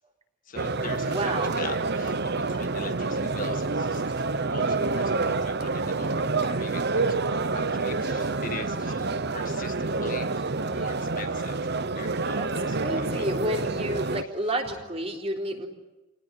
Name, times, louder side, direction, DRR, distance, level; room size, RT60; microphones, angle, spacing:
voice 1, 0.5-4.0 4.3-13.3 14.7-14.8, left 4 dB, 40° left, 6 dB, 1.7 m, -42 dB
sound 1, 0.6-14.2, right 3 dB, 50° right, 0.9 m, -28 dB
voice 2, 1.0-1.6 12.3-15.7, right 1 dB, 30° right, 2 dB, 3.7 m, -31 dB
29.0 x 19.0 x 10.0 m, 1.1 s
head